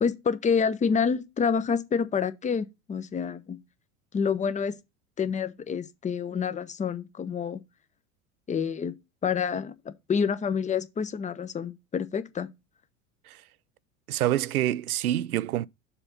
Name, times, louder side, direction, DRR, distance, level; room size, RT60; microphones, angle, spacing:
voice 1, 0.0-3.6 4.1-4.8 5.2-7.6 8.5-8.9 9.2-12.5, left 6 dB, 15° left, 0.7 m, -28 dB
voice 2, 14.1-15.7, right 13 dB, 80° right, 0.6 m, -26 dB
7.0 x 4.3 x 5.5 m
hypercardioid pair, 85°, 43 cm